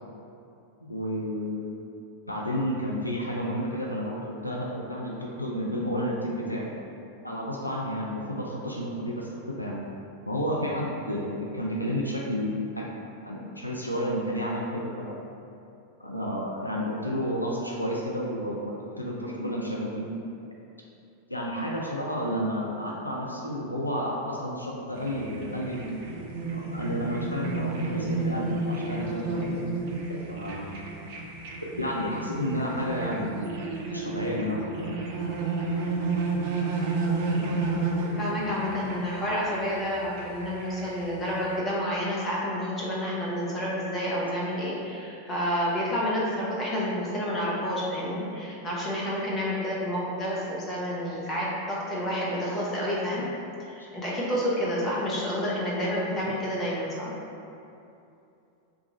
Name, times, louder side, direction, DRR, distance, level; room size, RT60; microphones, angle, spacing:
voice 1, 0.8-1.8 2.3-6.7 7.2-9.8 10.3-12.9 13.2-15.2 16.0-20.1 21.3-26.0 26.5-29.6 30.3-30.7 31.8-33.6 33.9-35.0, equal, 85° left, -3 dB, 0.3 m, -31 dB
sound 1, 24.9-41.6, right 3 dB, 50° right, 0.4 m, -31 dB
voice 2, 37.3-37.6 38.2-53.3 53.7-57.1, equal, 20° left, -6 dB, 0.8 m, -29 dB
2.9 x 2.4 x 4.1 m, 2.7 s
figure-of-eight pair, 90°, 0 cm